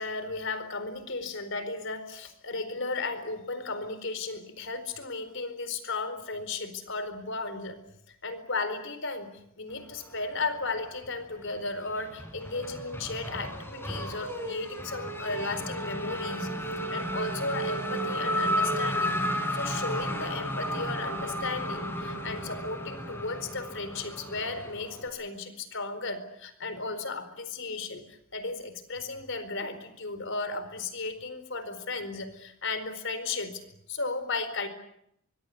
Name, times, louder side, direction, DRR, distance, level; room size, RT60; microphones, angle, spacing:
voice 1, 0.0-7.8 8.1-9.3 9.6-16.5 16.9-19.1 19.5-33.6 33.9-34.7, left 3 dB, 65° left, 11 dB, 4.4 m, -35 dB
Race car auto racing / Accelerating revving vroom, 10.1-11.1 11.4-25.1, equal, 10° left, 6.2 m, -33 dB
24.5 x 22.0 x 8.4 m, 0.74 s
head